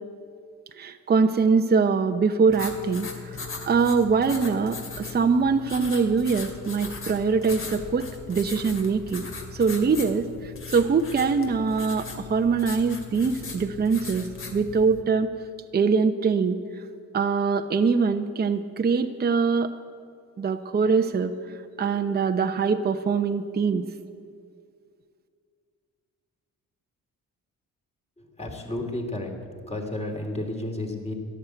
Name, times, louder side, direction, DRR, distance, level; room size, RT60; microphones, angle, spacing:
voice 1, 0.7-15.3 15.7-16.6 17.1-19.7 20.4-21.3 21.8-23.8, right 5 dB, 30° right, 7 dB, 0.8 m, -23 dB
sound 1, 2.5-15.0, left 4 dB, 45° left, 2.4 m, -39 dB
voice 2, 28.2-29.3 29.7-31.1, left 1 dB, 20° left, 2 dB, 2.9 m, -32 dB
13.5 x 11.0 x 8.0 m, 2.2 s
cardioid pair, 90°, 30 cm